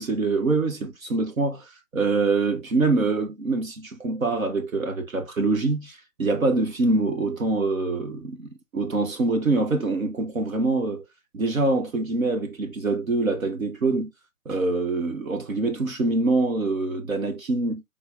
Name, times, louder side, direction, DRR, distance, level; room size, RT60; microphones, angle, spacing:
voice 1, 0.0-11.1 11.3-14.1 14.4-17.8, right 3 dB, 60° right, 1.3 m, -25 dB
5.9 x 3.7 x 2.4 m
figure-of-eight pair, 140°, 47 cm